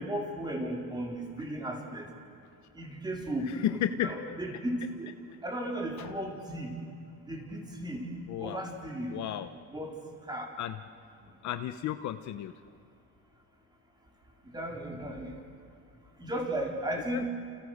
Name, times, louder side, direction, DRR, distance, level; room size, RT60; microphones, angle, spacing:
voice 1, 0.0-2.1 2.7-5.1 5.4-6.7 7.2-8.0 8.4-9.2 9.7-10.5 11.2-11.3 14.5-15.4 16.2-17.3, right 1 dB, 10° right, 0 dB, 4.4 m, -35 dB
voice 2, 3.6-4.4 6.0-6.1 8.3-8.6 9.1-9.5 10.6-10.8 11.4-12.5 17.1-17.3, left 11 dB, 50° left, 9 dB, 1.0 m, -33 dB
30.0 x 29.0 x 6.6 m, 2.4 s
cardioid pair, 145°, 36 cm